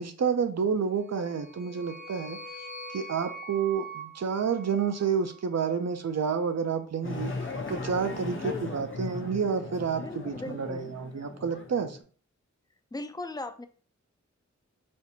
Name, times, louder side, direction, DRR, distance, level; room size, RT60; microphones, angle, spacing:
voice 1, 0.0-2.4 2.9-7.3 7.7-12.0, right 6 dB, 60° right, 8 dB, 0.5 m, -29 dB
sound 1, 1.1-5.4, right 3 dB, 75° left, 0.8 m, -43 dB
sound 2, 7.0-12.0, left 3 dB, 45° left, 0.7 m, -38 dB
voice 2, 8.3-8.8 10.0-10.9 12.9-13.7, left 2 dB, 15° left, 9 dB, 0.3 m, -38 dB
4.3 x 2.5 x 2.7 m, 0.43 s
wide cardioid pair, 60°, 30 cm